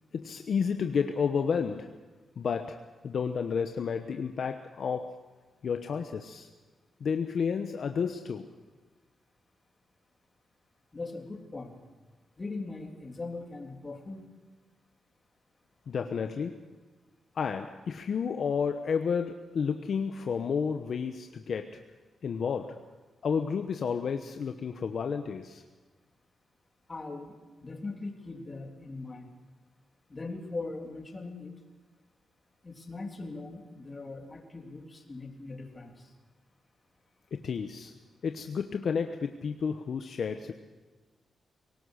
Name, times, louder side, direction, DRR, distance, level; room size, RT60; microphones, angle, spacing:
voice 1, 0.1-2.0 2.4-5.2 5.6-6.5 7.0-8.5 15.9-16.6 17.3-21.8 22.2-22.8 23.2-25.6 37.3-37.9 38.2-40.5, left 6 dB, 60° left, 6 dB, 1.1 m, -31 dB
voice 2, 10.9-11.7 12.4-14.2 26.9-27.4 27.6-29.3 30.1-31.6 32.6-36.1, left 3 dB, 30° left, 2 dB, 3.5 m, -40 dB
24.0 x 18.0 x 6.6 m, 1.3 s
cardioid pair, 105°, 0 cm